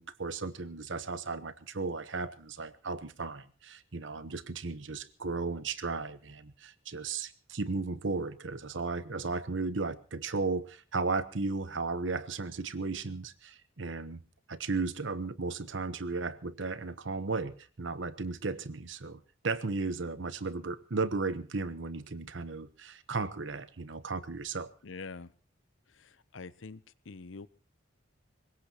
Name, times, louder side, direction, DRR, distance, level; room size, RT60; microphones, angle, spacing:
voice 1, 0.0-14.2 14.5-24.7, right 3 dB, 70° right, 13 dB, 1.0 m, -35 dB
voice 2, 24.8-25.3 25.9-27.5, left 4 dB, 80° left, 16 dB, 0.8 m, -45 dB
23.5 x 20.5 x 2.9 m, 0.37 s
head